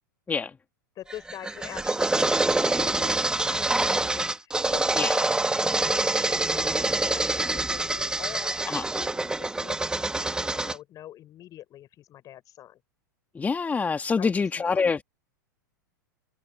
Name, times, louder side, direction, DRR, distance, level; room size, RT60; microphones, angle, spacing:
voice 1, 1.0-12.8 14.2-14.9, left 12 dB, 35° left, 5.4 m, -43 dB
sound 1, 1.1-10.7, right 2 dB, 5° right, 2.5 m, -26 dB
voice 2, 13.3-15.0, left 5 dB, 15° left, 2.3 m, -26 dB
figure-of-eight pair, 95°, 11 cm